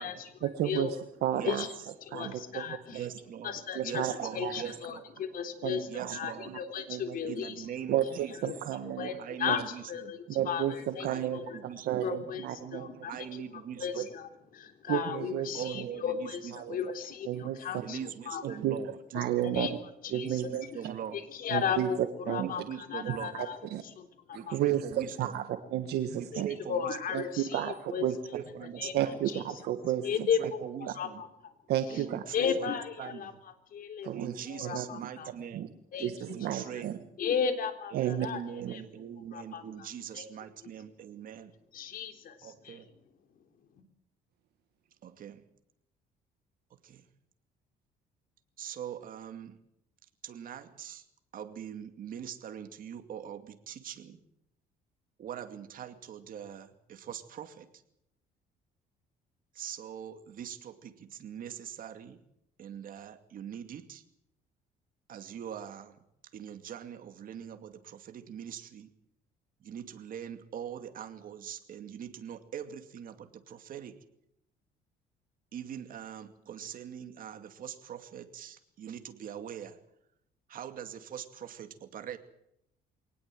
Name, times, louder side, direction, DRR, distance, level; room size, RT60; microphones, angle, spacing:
voice 1, 0.4-1.7 2.1-3.1 3.7-4.6 5.6-6.2 6.5-6.6 6.9-7.2 7.9-9.1 9.5-9.6 10.3-11.4 11.8-13.1 14.9-15.9 16.5-16.8 17.2-17.6 18.4-18.8 19.1-19.7 20.1-20.9 21.5-21.9 22.3-22.5 23.0-23.1 23.7-23.8 24.3-26.5 27.1-28.1 28.9-30.1 31.7-32.2 34.0-34.3 34.6-34.9 35.5-35.7 36.0-36.9 37.9-38.3 38.6-38.7, right 11 dB, 75° right, 8 dB, 1.6 m, -32 dB
voice 2, 2.1-3.1 3.4-4.0 4.3-7.7 8.4-8.6 9.0-11.6 12.0-13.1 13.8-18.5 19.4-19.7 20.0-20.8 21.1-23.6 23.8-24.6 26.3-26.4 26.7-28.4 28.8-28.9 29.3-29.6 30.0-31.5 32.3-34.1 34.5-35.3 35.9-36.1 37.2-38.8 39.3-39.9 40.1-40.3 41.7-42.8, left 7 dB, 55° left, 7 dB, 3.6 m, -35 dB
voice 3, 2.9-5.0 5.9-6.5 7.2-8.4 9.2-10.1 11.0-12.1 13.1-14.1 15.5-16.9 17.8-19.0 20.1-21.2 22.3-23.4 24.3-25.4 26.2-27.0 28.3-29.2 30.1-31.2 31.9-33.4 34.1-35.7 36.3-37.0 37.9-41.5 42.4-42.9 45.0-45.4 46.8-47.0 48.6-49.6 50.2-51.0 51.3-54.2 55.2-57.7 59.5-62.2 62.6-64.0 65.1-66.0 66.3-68.9 69.6-74.0 75.5-79.8 80.5-82.2, right 9 dB, 55° right, 7 dB, 2.4 m, -42 dB
23.5 x 19.0 x 7.7 m, 0.78 s
cardioid pair, 110°, 17 cm